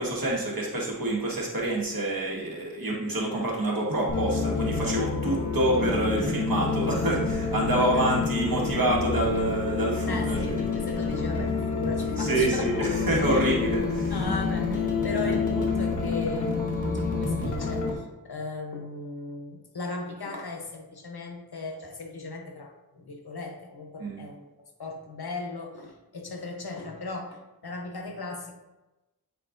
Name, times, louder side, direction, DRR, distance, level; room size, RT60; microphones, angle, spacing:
voice 1, 0.0-10.6 12.2-14.1 24.0-24.2, right 1 dB, 65° right, -3 dB, 1.7 m, -27 dB
sound 1, 4.1-17.9, left 4 dB, 50° left, 1.4 m, -28 dB
voice 2, 7.8-8.2 10.1-12.7 13.3-13.5 14.1-24.5 24.8-28.5, left 3 dB, 80° left, 2 dB, 1.0 m, -37 dB
8.3 x 4.4 x 2.6 m, 1.0 s
wide cardioid pair, 45°, 38 cm